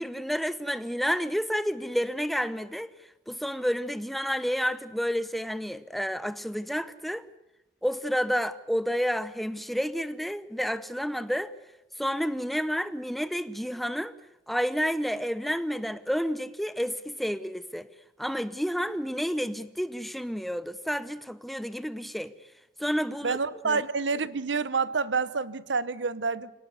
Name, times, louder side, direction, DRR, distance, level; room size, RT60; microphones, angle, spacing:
voice 1, 0.0-2.9 3.3-7.2 7.8-11.5 12.0-14.1 14.5-17.9 18.2-22.3 22.8-23.4 23.6-23.8, equal, ahead, 0.8 m, -30 dB
voice 2, 23.2-26.5, right 4 dB, 85° right, 0.9 m, -28 dB
24.5 x 18.5 x 8.2 m
head